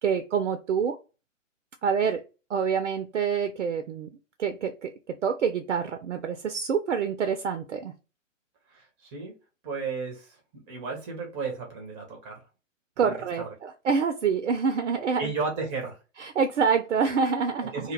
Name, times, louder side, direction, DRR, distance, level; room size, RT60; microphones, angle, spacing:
voice 1, 0.0-1.0 1.8-2.2 2.5-4.1 4.4-7.9 13.0-15.3 16.2-17.9, right 6 dB, 70° right, 7 dB, 0.5 m, -26 dB
voice 2, 8.7-9.4 9.6-12.4 13.0-13.2 15.2-16.0 17.7-17.9, right 4 dB, 15° right, 1 dB, 0.6 m, -34 dB
2.2 x 2.1 x 3.0 m, 0.32 s
figure-of-eight pair, 120°, 38 cm